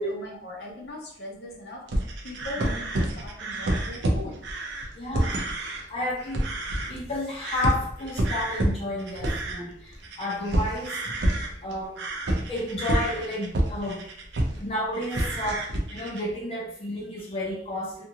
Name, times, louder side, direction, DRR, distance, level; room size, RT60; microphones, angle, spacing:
voice 1, 0.0-4.4, left 1 dB, 65° left, -2 dB, 0.8 m, -40 dB
sound 1, 1.9-5.8 6.2-7.1 7.4-14.6 14.9-16.3, right 1 dB, 75° right, 0.6 m, -28 dB
voice 2, 4.9-5.3 5.9-6.4 6.9-11.1 11.6-14.1 14.5-18.0, left 1 dB, 35° left, -4 dB, 0.8 m, -31 dB
2.6 x 2.4 x 2.8 m, 0.66 s
head